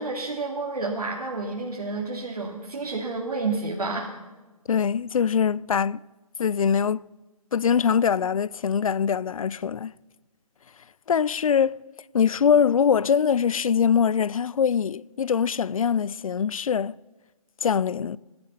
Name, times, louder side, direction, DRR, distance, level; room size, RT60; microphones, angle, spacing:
voice 1, 0.0-4.1, right 3 dB, 80° right, 2.6 m, -30 dB
voice 2, 4.7-6.0 6.4-7.0 7.5-9.9 11.1-11.8 12.1-17.0 17.6-18.2, left 7 dB, 65° left, 0.4 m, -23 dB
18.0 x 11.5 x 5.6 m
hypercardioid pair, 160°, 19 cm